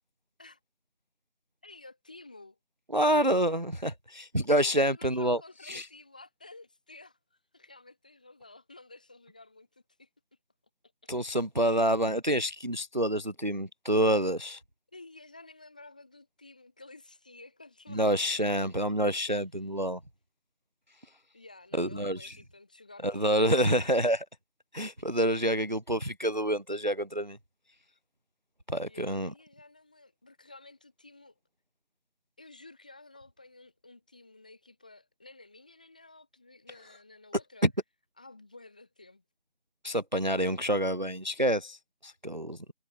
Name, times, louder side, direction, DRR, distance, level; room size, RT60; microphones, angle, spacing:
voice 1, 1.6-2.6 4.5-10.1 11.0-11.1 14.9-18.3 21.3-23.7 28.9-31.3 32.4-37.7 38.2-39.2, left 2 dB, 10° left, 5.7 m, -52 dB
voice 2, 2.9-5.9 11.1-14.6 17.9-20.0 21.8-22.3 23.0-24.3 24.7-27.4 28.7-29.3 39.8-42.6, right 1 dB, 45° right, 0.6 m, -27 dB
figure-of-eight pair, 180°, 32 cm